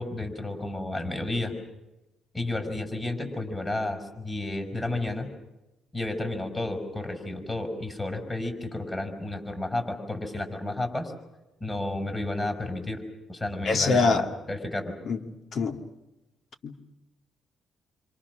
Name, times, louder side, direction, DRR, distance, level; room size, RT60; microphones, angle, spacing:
voice 1, 0.0-1.5 2.3-5.3 5.9-11.1 11.6-13.0 13.3-14.9, left 2 dB, 20° left, 6 dB, 6.2 m, -31 dB
voice 2, 13.6-14.3 15.1-15.8 16.6-16.8, left 4 dB, 60° left, 6 dB, 2.2 m, -25 dB
27.5 x 26.0 x 6.4 m, 0.97 s
cardioid pair, 90°, 0 cm